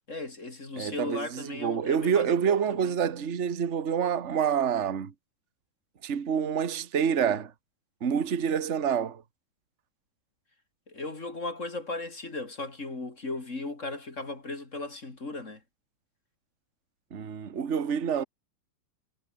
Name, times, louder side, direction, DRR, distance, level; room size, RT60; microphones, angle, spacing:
voice 1, 0.1-2.9 10.9-15.6, left 2 dB, 25° left, 2.9 m, -37 dB
voice 2, 0.8-5.1 6.0-7.5 8.0-9.2 17.1-18.2, right 7 dB, 40° right, 1.0 m, -27 dB
omnidirectional pair, 3.8 m